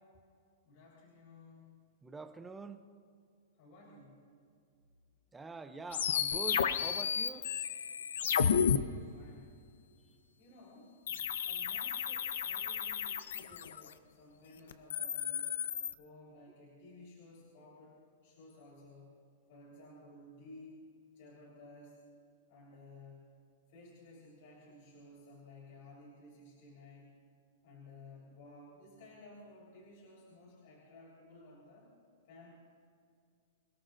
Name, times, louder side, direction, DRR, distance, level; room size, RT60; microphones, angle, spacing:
voice 1, 0.6-1.8 3.6-4.2 8.2-9.7 10.4-15.6 16.0-19.2 19.5-20.9 21.1-22.0 22.5-23.4 23.7-27.1 27.6-31.9 32.3-32.5, left 2 dB, 45° left, -5 dB, 3.9 m, -56 dB
voice 2, 2.0-2.9 5.3-7.5, right 4 dB, 5° right, 8 dB, 0.6 m, -45 dB
sound 1, 5.9-8.8 11.1-13.9 14.7-15.9, left 8 dB, 70° left, 0.8 m, -32 dB
26.0 x 17.0 x 2.6 m, 2.3 s
supercardioid pair, 175°, 0 cm